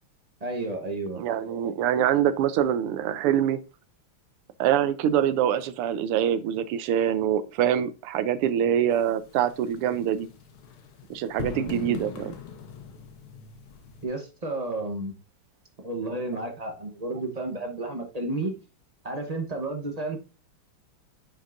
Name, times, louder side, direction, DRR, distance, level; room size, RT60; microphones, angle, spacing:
voice 1, 0.4-1.2 14.0-15.1 15.8-18.5 19.0-20.2, right 2 dB, 45° right, 0.5 m, -31 dB
voice 2, 1.2-3.6 4.6-10.3 11.1-12.3, right 10 dB, 90° right, 1.6 m, -24 dB
sound 1, 8.9-14.0, left 7 dB, 80° left, 2.0 m, -41 dB
10.0 x 5.3 x 2.6 m
omnidirectional pair, 2.4 m